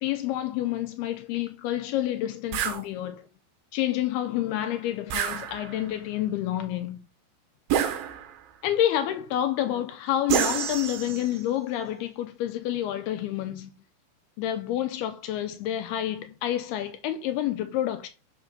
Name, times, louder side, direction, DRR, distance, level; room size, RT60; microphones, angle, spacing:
voice 1, 0.0-3.3 3.7-7.0 8.6-13.7 14.4-18.1, left 12 dB, 80° left, 2.3 m, -28 dB
sound 1, 2.5-2.8 5.1-5.9 7.7-8.5 10.3-11.4, right 9 dB, 70° right, 2.4 m, -28 dB
6.5 x 4.0 x 5.9 m
omnidirectional pair, 5.3 m